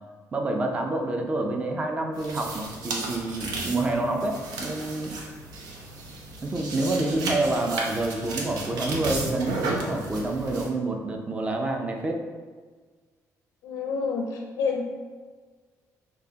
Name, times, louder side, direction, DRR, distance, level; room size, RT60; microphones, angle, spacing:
voice 1, 0.3-5.1 6.4-12.2, right 2 dB, 20° right, 2 dB, 0.5 m, -28 dB
sound 1, 2.1-10.7, right 2 dB, 80° right, 0.8 m, -34 dB
voice 2, 13.6-14.9, left 5 dB, 70° left, 1 dB, 0.5 m, -28 dB
6.2 x 3.1 x 2.8 m, 1.5 s
cardioid pair, 170°, 7 cm